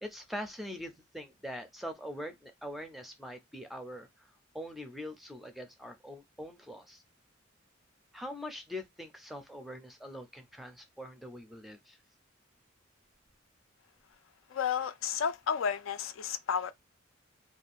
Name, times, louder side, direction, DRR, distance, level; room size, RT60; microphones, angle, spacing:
voice 1, 0.0-7.0 8.1-12.0, equal, ahead, 0.4 m, -43 dB
voice 2, 14.5-16.7, left 7 dB, 75° left, 0.4 m, -32 dB
2.5 x 2.3 x 3.4 m
head